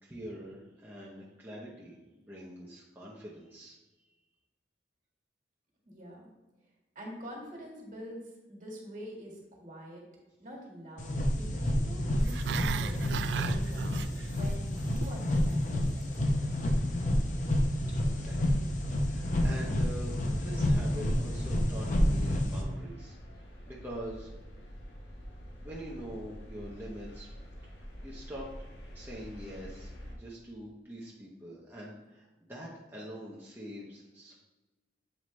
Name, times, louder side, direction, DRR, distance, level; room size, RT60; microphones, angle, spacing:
voice 1, 0.0-3.7 17.7-24.3 25.6-27.3 27.6-28.5 28.9-34.4, equal, 10° right, -5 dB, 0.9 m, -45 dB
voice 2, 5.8-6.3 7.0-10.0 10.4-14.0 14.3-16.3, equal, 45° right, -1 dB, 1.8 m, -45 dB
sound 1, 11.0-22.6, left 1 dB, 45° left, 0.8 m, -29 dB
Growling, 12.2-14.5 14.8-15.2 15.5-15.6, right 6 dB, 75° right, 0.3 m, -35 dB
sound 2, 16.3-30.2, equal, 75° left, 1.4 m, -48 dB
7.6 x 4.8 x 3.2 m, 1.1 s
head